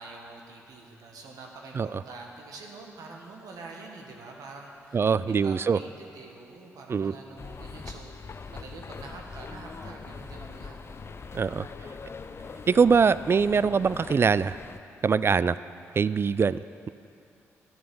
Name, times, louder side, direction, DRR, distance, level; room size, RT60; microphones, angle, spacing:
voice 1, 0.0-11.4, right 3 dB, 70° right, 1 dB, 1.4 m, -46 dB
voice 2, 4.9-5.8 6.9-7.1 11.3-11.9 12.7-14.6 15.0-15.6 15.9-16.9, right 5 dB, 40° right, 17 dB, 0.3 m, -23 dB
sound 1, 7.4-14.8, left 4 dB, 40° left, 0.6 m, -42 dB
11.5 x 7.6 x 6.9 m, 2.6 s
hypercardioid pair, 45°, 6 cm